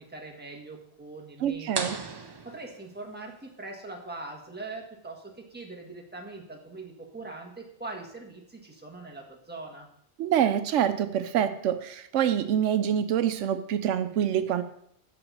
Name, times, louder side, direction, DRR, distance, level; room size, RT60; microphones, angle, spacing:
voice 1, 0.0-2.0 2.4-9.9, right 3 dB, 10° right, -1 dB, 1.3 m, -42 dB
voice 2, 1.4-2.0 10.2-14.6, right 9 dB, 85° right, 11 dB, 0.9 m, -26 dB
sound 1, 1.7-3.4, right 4 dB, 35° right, 0.4 m, -36 dB
6.1 x 5.9 x 6.5 m, 0.71 s
omnidirectional pair, 1.2 m